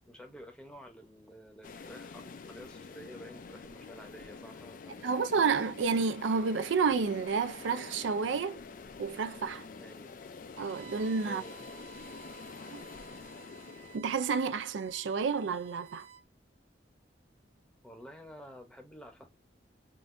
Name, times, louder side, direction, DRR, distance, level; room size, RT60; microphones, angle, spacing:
voice 1, 0.1-5.6 9.8-10.1 11.2-11.6 17.8-19.3, equal, 5° left, 0.7 m, -50 dB
sound 1, 1.6-14.0, left 4 dB, 45° left, 0.4 m, -47 dB
voice 2, 5.0-8.6 9.0-9.7 10.6-11.4 12.7-12.8 13.9-16.1, right 5 dB, 85° right, 0.4 m, -30 dB
Bowed string instrument, 10.6-16.2, right 7 dB, 35° right, 0.5 m, -54 dB
3.7 x 2.5 x 2.5 m
head